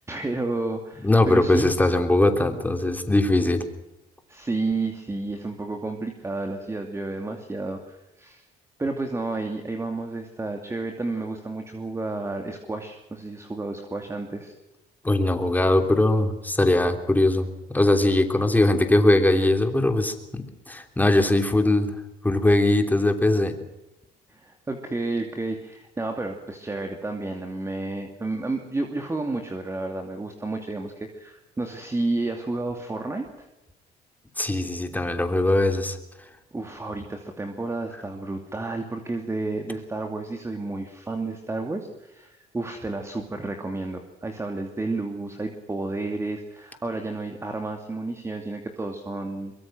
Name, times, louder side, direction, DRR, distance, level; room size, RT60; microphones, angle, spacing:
voice 1, 0.1-1.7 4.3-8.5 8.8-14.5 24.3-33.5 36.5-49.5, right 2 dB, 15° right, 4 dB, 2.6 m, -31 dB
voice 2, 1.0-3.6 15.0-21.9 22.2-23.5 34.4-36.0, left 1 dB, 10° left, 6 dB, 3.3 m, -21 dB
23.5 x 22.5 x 6.2 m, 0.95 s
cardioid pair, 110°, 17 cm